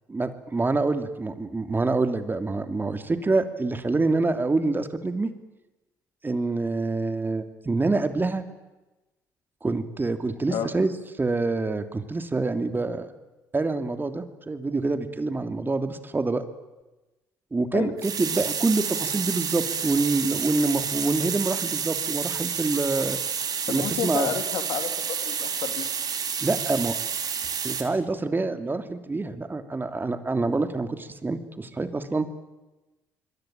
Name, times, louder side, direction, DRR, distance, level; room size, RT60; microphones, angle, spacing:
voice 1, 0.1-5.3 6.2-8.4 9.6-10.9 11.2-13.1 13.5-16.4 17.5-23.2 23.7-24.3 26.4-26.9 27.6-32.3, right 3 dB, 25° right, 9 dB, 2.9 m, -26 dB
sound 1, 18.0-27.8, right 7 dB, 55° right, 4.2 m, -29 dB
voice 2, 23.7-25.9, left 9 dB, 70° left, 9 dB, 2.8 m, -31 dB
26.5 x 22.0 x 9.0 m, 1.1 s
supercardioid pair, 65°, 8 cm